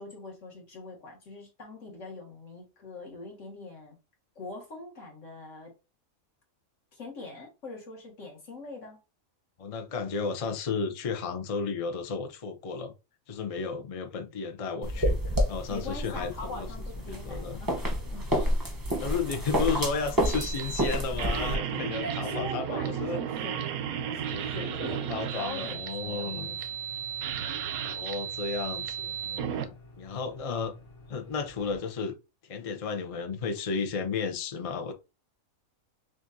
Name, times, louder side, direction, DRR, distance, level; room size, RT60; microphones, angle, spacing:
voice 1, 0.0-4.0 4.4-5.7 6.9-9.0 15.7-17.8 18.1-18.4 19.3-19.4 22.0-23.6 24.0-26.6, left 2 dB, 60° left, 1.9 m, -42 dB
voice 2, 9.6-12.9 13.3-16.7 17.1-17.6 18.3-18.4 18.9-23.2 24.3-26.6 27.8-30.7 31.1-32.2 32.4-34.9, left 5 dB, 45° left, 0.4 m, -33 dB
sound 1, 14.8-21.6, equal, 20° right, 0.8 m, -29 dB
sound 2, 15.0-31.8, left 2 dB, 80° left, 1.7 m, -52 dB
sound 3, 20.2-29.7, right 9 dB, 90° right, 1.1 m, -34 dB
6.2 x 2.5 x 2.6 m
omnidirectional pair, 1.5 m